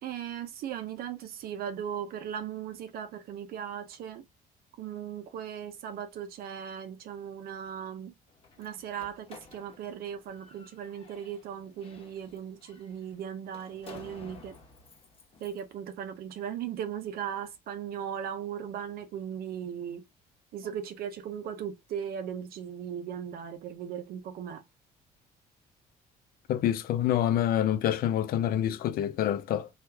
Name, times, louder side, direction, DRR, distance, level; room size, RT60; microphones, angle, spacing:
voice 1, 0.0-4.2 4.8-8.1 8.6-14.6 15.4-20.0 20.5-24.6, right 9 dB, 65° right, 0.5 m, -38 dB
Slam, 8.3-15.7, left 4 dB, 35° left, 1.0 m, -53 dB
voice 2, 26.5-29.7, left 11 dB, 60° left, 0.5 m, -27 dB
3.1 x 2.3 x 3.3 m
cardioid pair, 110°, 17 cm